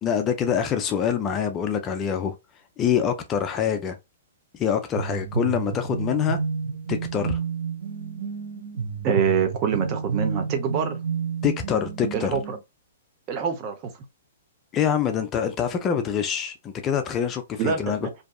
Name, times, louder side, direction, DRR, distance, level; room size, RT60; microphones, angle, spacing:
voice 1, 0.0-2.4 2.8-4.0 4.5-6.4 6.9-7.4 11.4-12.3 14.7-18.0, left 8 dB, 25° left, 0.4 m, -25 dB
sound 1, 4.9-12.6, right 5 dB, 85° right, 0.9 m, -30 dB
voice 2, 9.0-11.0 12.1-12.6 13.3-13.9 17.6-18.1, right 7 dB, 35° right, 0.7 m, -25 dB
2.6 x 2.3 x 2.3 m
hypercardioid pair, 140°, 0 cm